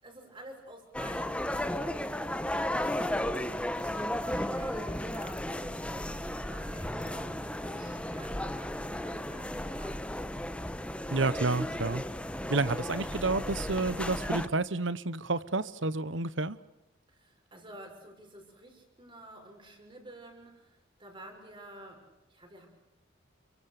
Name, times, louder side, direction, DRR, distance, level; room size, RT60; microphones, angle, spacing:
voice 1, 0.0-2.2 3.3-10.1 17.1-22.7, right 1 dB, 25° right, 6.2 m, -51 dB
sound 1, 0.9-14.5, left 1 dB, 5° left, 1.1 m, -34 dB
voice 2, 11.1-12.0 12.5-16.6, right 3 dB, 60° right, 1.1 m, -30 dB
30.0 x 24.5 x 6.8 m
head